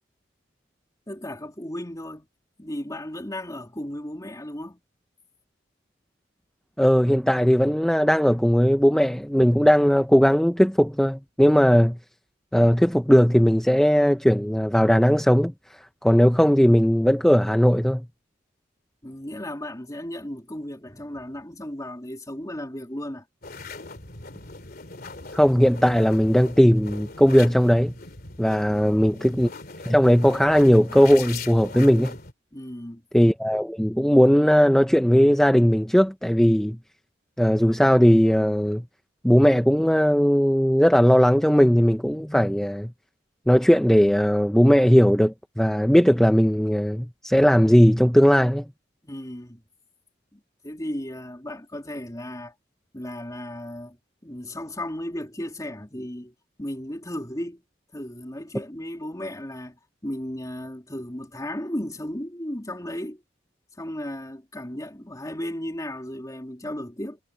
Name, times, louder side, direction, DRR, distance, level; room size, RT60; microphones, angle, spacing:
voice 1, 1.1-2.3 2.6-4.8 19.0-23.2 28.7-29.1 32.5-33.0 49.0-49.6 50.3-52.5 52.9-54.0 54.2-57.6 57.9-63.2 63.8-67.2, left 1 dB, 20° left, 3.5 m, -35 dB
voice 2, 6.8-12.0 12.5-15.5 16.0-18.0 25.3-27.9 28.4-29.5 29.9-32.2 33.1-36.8 37.4-38.8 39.2-42.9 43.5-48.6, equal, 5° left, 0.7 m, -18 dB
sound 1, 23.4-32.3, left 3 dB, 55° left, 2.9 m, -40 dB
head